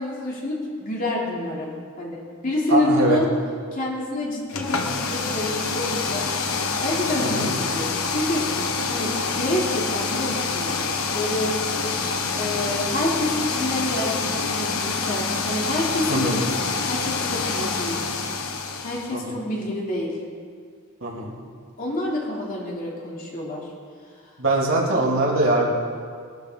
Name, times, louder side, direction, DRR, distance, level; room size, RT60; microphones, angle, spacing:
voice 1, 0.0-1.7 2.0-3.3 3.7-6.3 6.8-8.5 8.9-10.8 11.1-11.6 12.4-16.5 16.9-18.0 18.8-20.2 21.8-23.7, left 1 dB, 40° left, -4 dB, 3.4 m, -27 dB
voice 2, 2.7-3.2 7.2-7.5 16.1-16.4 19.1-19.4 21.0-21.3 24.4-25.7, right 2 dB, 65° right, -4 dB, 3.1 m, -22 dB
sound 1, 4.5-19.1, left 4 dB, 85° left, 1.3 m, -26 dB
21.5 x 12.5 x 4.0 m, 2.1 s
head